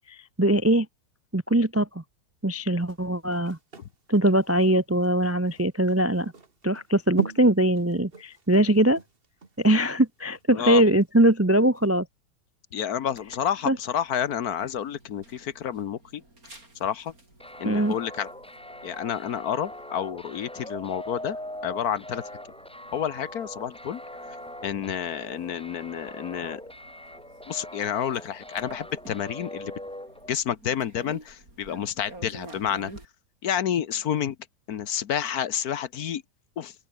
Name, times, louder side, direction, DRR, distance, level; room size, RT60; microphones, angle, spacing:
voice 1, 0.1-0.9 1.3-2.0 2.4-3.6 4.1-6.3 6.6-9.0 9.6-12.1 13.7-13.8 17.6-18.0, right 1 dB, 15° right, 0.5 m, -22 dB
sound 1, 2.8-11.4 11.7-11.9, right 4 dB, 35° right, 2.1 m, -40 dB
voice 2, 12.7-16.2 16.8-17.1 17.6-18.3 18.8-21.4 21.6-22.2 22.9-24.0 24.6-26.6 27.5-29.7 30.3-32.9 33.4-34.4 34.7-36.2 36.6-36.7, left 9 dB, 65° left, 1.4 m, -29 dB
sound 2, 13.1-33.1, right 2 dB, 55° right, 7.3 m, -51 dB
sound 3, 17.4-30.3, left 1 dB, 5° left, 0.8 m, -41 dB
open air
omnidirectional pair, 1.8 m